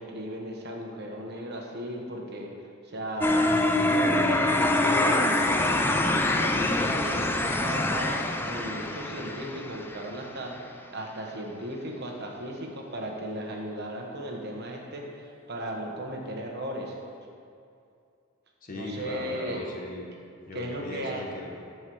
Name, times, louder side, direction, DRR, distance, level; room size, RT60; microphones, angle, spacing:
voice 1, 0.0-2.5 2.8-3.5 3.8-17.0 18.7-19.7 20.5-21.2, right 1 dB, 50° right, 0 dB, 1.1 m, -36 dB
sound 1, 3.2-10.1, left 1 dB, 10° left, 0.4 m, -25 dB
voice 2, 18.6-20.1 20.5-21.5, left 2 dB, 40° left, 0 dB, 1.1 m, -38 dB
13.0 x 4.7 x 4.7 m, 2.4 s
head